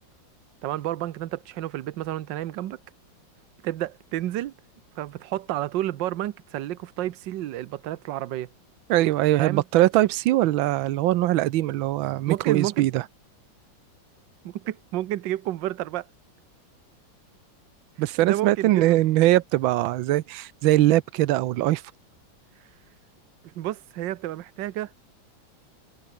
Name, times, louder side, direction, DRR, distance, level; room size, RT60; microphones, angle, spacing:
voice 1, 0.6-2.8 3.6-4.5 5.0-8.5 9.4-9.6 12.3-12.9 14.4-16.1 18.2-19.0 23.5-24.9, right 14 dB, 70° right, 1.5 m, -30 dB
voice 2, 8.9-13.0 18.0-21.8, right 15 dB, 90° right, 1.5 m, -21 dB
omnidirectional pair, 2.1 m